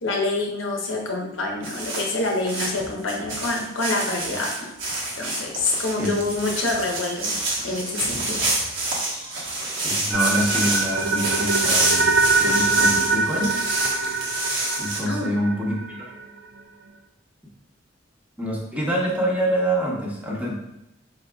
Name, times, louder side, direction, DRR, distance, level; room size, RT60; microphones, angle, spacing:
voice 1, 0.0-4.5 5.2-7.3 7.6-8.5 15.1-15.3, left 2 dB, 90° left, 0 dB, 0.9 m, -26 dB
sound 1, 1.6-15.0, right 2 dB, 80° right, 1.2 m, -27 dB
voice 2, 9.8-12.1 12.4-13.5 14.8-16.1 18.4-20.6, right 1 dB, 10° right, -3 dB, 0.9 m, -26 dB
sound 2, 10.1-16.2, right 3 dB, 60° right, 0.4 m, -24 dB
5.1 x 4.0 x 2.3 m, 0.87 s
head